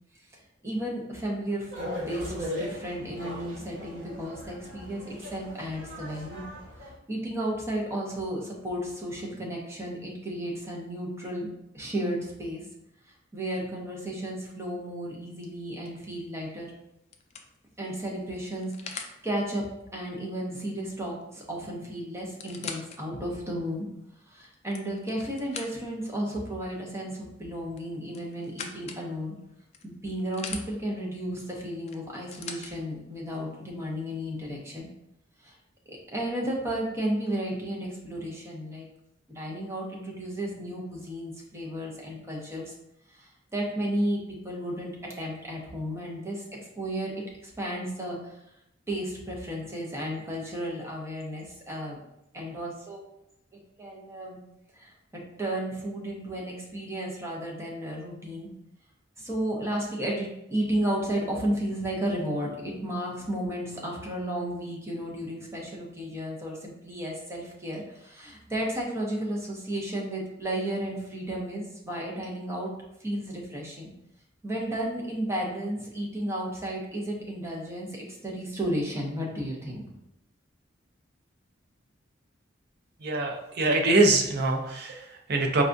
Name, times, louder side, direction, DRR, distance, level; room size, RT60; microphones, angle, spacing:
voice 1, 0.6-6.4 6.8-11.5 11.7-12.7 13.3-16.7 17.8-23.8 24.3-29.3 29.8-34.8 35.4-35.5 35.9-38.9 39.3-42.7 43.1-46.4 46.8-48.4 48.9-52.0 52.3-53.0 53.5-54.4 54.7-58.5 59.2-72.7 73.0-73.9 74.4-79.9, right 1 dB, 15° right, -2 dB, 0.6 m, -33 dB
sound 1, 1.7-6.9, left 1 dB, 75° right, 1.1 m, -38 dB
sound 2, 16.2-16.5 17.1-19.2 21.2-21.3 21.6-21.7 22.2-23.0 23.6-23.7 24.4-26.0 27.7-29.0 29.7-30.7 31.9-32.7 33.7-33.8, left 5 dB, 35° left, 0.3 m, -41 dB
voice 2, 83.0-85.6, right 2 dB, 55° right, 2 dB, 0.5 m, -24 dB
4.7 x 2.3 x 2.5 m, 0.83 s
head